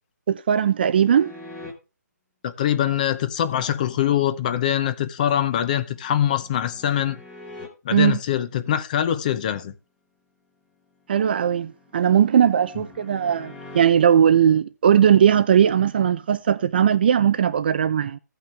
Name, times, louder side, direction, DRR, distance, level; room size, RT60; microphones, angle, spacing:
voice 1, 0.3-1.3 7.9-8.2 11.1-18.2, right 8 dB, 30° right, 0.4 m, -19 dB
sound 1, 1.1-1.7 5.1-7.7 10.8-13.8, left 2 dB, 5° left, 1.7 m, -44 dB
voice 2, 2.4-7.2 7.8-9.7 12.8-12.9, left 10 dB, 25° left, 0.7 m, -23 dB
15.5 x 5.7 x 3.3 m
hypercardioid pair, 160°, 10 cm